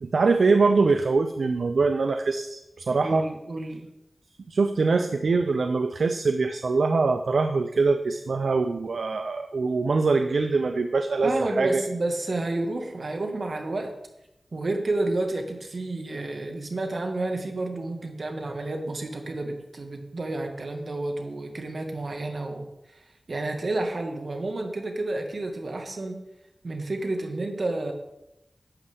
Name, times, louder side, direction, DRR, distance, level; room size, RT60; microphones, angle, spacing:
voice 1, 0.0-3.2 4.5-11.8, right 4 dB, 85° right, 7 dB, 0.5 m, -23 dB
voice 2, 3.0-3.9 11.2-13.9 14.5-26.2 26.6-27.9, right 2 dB, 65° right, 4 dB, 1.5 m, -30 dB
11.5 x 8.2 x 3.5 m, 0.89 s
wide cardioid pair, 55°, 0 cm